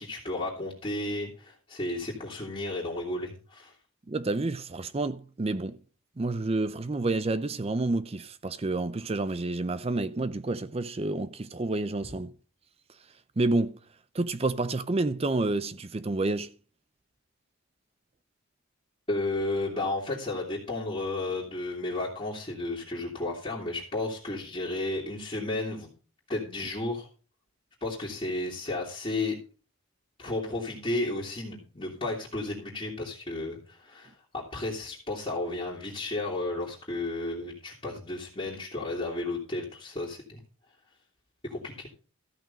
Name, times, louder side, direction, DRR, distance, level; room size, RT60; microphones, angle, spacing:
voice 1, 0.0-3.7 19.1-25.9 26.3-27.1 27.8-29.3 30.2-40.4 41.5-41.9, left 2 dB, 25° left, 2.7 m, -33 dB
voice 2, 4.1-5.8 6.2-12.3 13.4-13.8 14.1-16.5, right 2 dB, 30° right, 0.5 m, -29 dB
14.5 x 6.0 x 5.3 m
head